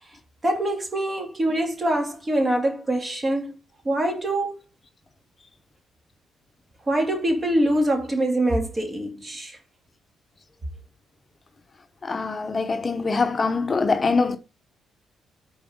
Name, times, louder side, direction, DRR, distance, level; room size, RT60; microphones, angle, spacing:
voice 1, 0.4-3.5 3.8-4.6 6.9-9.6, right 1 dB, 30° right, 2.3 m, -24 dB
voice 2, 12.0-14.4, left 4 dB, 35° left, 0.8 m, -23 dB
4.8 x 4.0 x 5.1 m
supercardioid pair, 55°, 0 cm